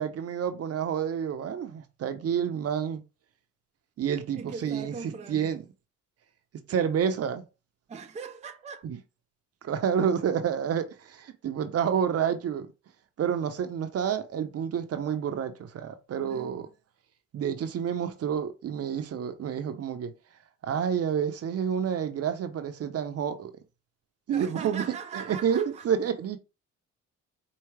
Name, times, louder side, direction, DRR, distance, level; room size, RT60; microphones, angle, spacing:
voice 1, 0.0-3.0 4.0-5.6 6.7-7.4 8.8-9.0 9.6-12.7 13.2-16.7 17.3-20.1 20.6-23.5 24.3-24.8 25.1-26.4, right 8 dB, 55° right, 0.7 m, -29 dB
voice 2, 4.4-5.6 7.9-8.9 16.2-16.6 24.3-25.9, right 5 dB, 25° right, 0.5 m, -40 dB
4.6 x 2.8 x 3.2 m
cardioid pair, 90°, 30 cm